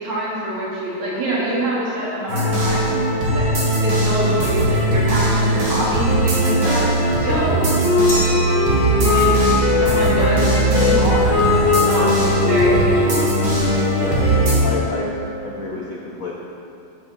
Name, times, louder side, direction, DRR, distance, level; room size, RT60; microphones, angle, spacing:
voice 1, 0.0-2.9 3.3-3.5 3.8-6.9 7.2-7.7 9.0-9.4 9.7-13.2, equal, 70° right, -8 dB, 4.8 m, -25 dB
sound 1, 2.3-14.6, right 2 dB, 45° right, 2.9 m, -19 dB
sound 2, 6.1-15.2, left 4 dB, 40° left, 2.3 m, -21 dB
Glass, 8.1-10.5, equal, 25° left, 3.3 m, -31 dB
voice 2, 13.9-14.3 14.6-15.1 15.4-16.3, left 3 dB, 75° left, -3 dB, 0.7 m, -29 dB
15.0 x 8.4 x 4.8 m, 2.6 s
omnidirectional pair, 3.4 m